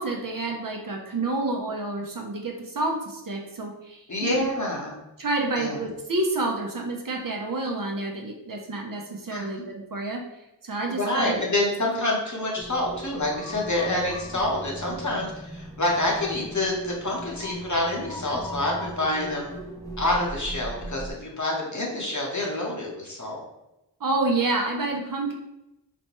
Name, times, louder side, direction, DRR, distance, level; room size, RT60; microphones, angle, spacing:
voice 1, 0.0-4.5 5.2-10.2 10.6-11.4 24.0-25.3, right 2 dB, 50° right, 1 dB, 0.6 m, -29 dB
voice 2, 4.1-4.9 5.6-5.8 9.3-9.6 10.9-19.5 20.0-23.4, left 1 dB, 40° left, -2 dB, 0.9 m, -27 dB
sound 1, 12.6-21.1, right 1 dB, 10° left, 0.6 m, -38 dB
4.2 x 2.2 x 3.0 m, 0.92 s
wide cardioid pair, 60°, 43 cm